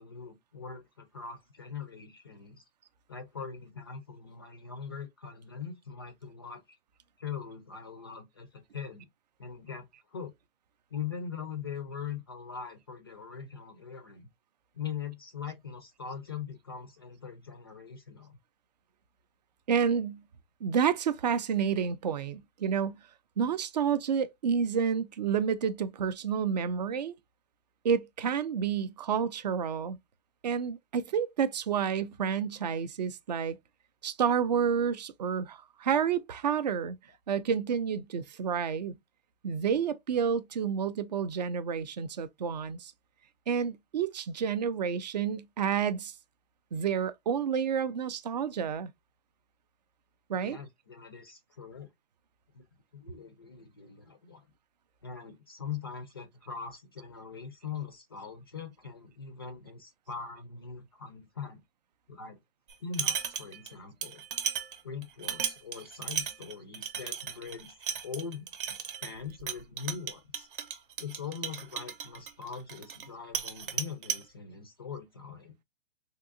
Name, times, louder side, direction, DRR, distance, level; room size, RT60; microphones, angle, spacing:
voice 1, 0.0-2.6 3.1-6.8 7.2-9.1 9.4-10.3 10.9-14.3 14.7-18.4 50.3-51.9 52.5-52.6 52.9-54.4 55.0-61.6 62.1-62.4 62.8-64.2 64.8-67.8 68.0-68.5 69.0-70.5 71.0-75.6, left 7 dB, 25° left, 0.4 m, -42 dB
voice 2, 19.7-20.2 20.6-23.0 23.4-27.1 27.8-30.0 30.4-33.6 34.0-37.0 37.3-39.0 39.4-42.9 43.5-46.1 46.7-48.9 50.3-50.6, right 7 dB, 45° right, 0.4 m, -29 dB
sound 1, 62.7-63.7 64.0-73.1 73.3-74.2, right 8 dB, 60° right, 0.8 m, -35 dB
3.6 x 2.7 x 2.5 m
hypercardioid pair, 170°, 30 cm